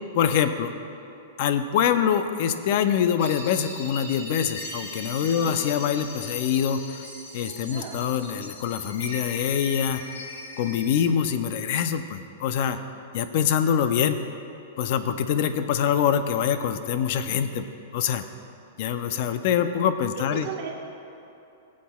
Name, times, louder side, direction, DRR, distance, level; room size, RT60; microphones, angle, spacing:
voice 1, 0.1-0.7 1.4-7.1 7.3-10.0 10.6-12.8 13.1-14.2 14.8-17.7 17.9-18.2 18.8-20.5, left 8 dB, 35° left, 10 dB, 0.4 m, -24 dB
sound 1, 3.2-11.0, left 2 dB, 65° left, 2.1 m, -39 dB
voice 2, 5.2-5.5 7.7-8.0 20.3-20.7, right 6 dB, 40° right, 0 dB, 1.2 m, -36 dB
20.0 x 7.3 x 2.3 m, 2.8 s
supercardioid pair, 180°, 0 cm